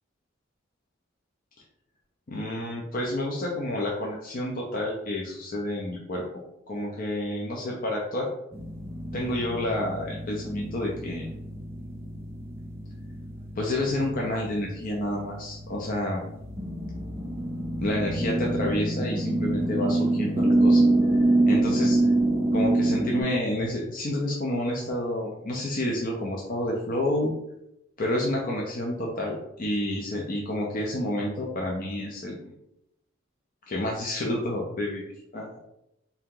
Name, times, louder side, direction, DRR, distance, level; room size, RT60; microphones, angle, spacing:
voice 1, 2.3-6.4 6.7-8.3 9.1-11.3 13.6-16.3 17.8-20.8 21.1-22.0 22.5-27.3 28.0-32.5 33.7-35.5, left 1 dB, 45° left, -2 dB, 0.6 m, -29 dB
sound 1, 8.5-23.2, right 2 dB, 10° right, 0.5 m, -26 dB
3.4 x 2.8 x 3.7 m, 0.82 s
head